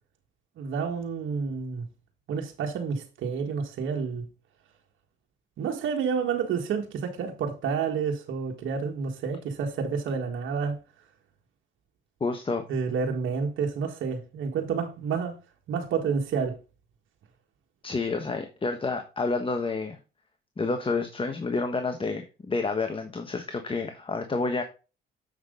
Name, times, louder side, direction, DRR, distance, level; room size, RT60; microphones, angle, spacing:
voice 1, 0.6-1.9 2.3-4.3 5.6-10.8 12.7-15.4 15.7-16.6, right 6 dB, 80° right, 1.8 m, -29 dB
voice 2, 12.2-12.6 17.8-20.0 20.6-24.6, left 3 dB, 25° left, 1.3 m, -29 dB
8.0 x 6.0 x 3.9 m
cardioid pair, 90°, 20 cm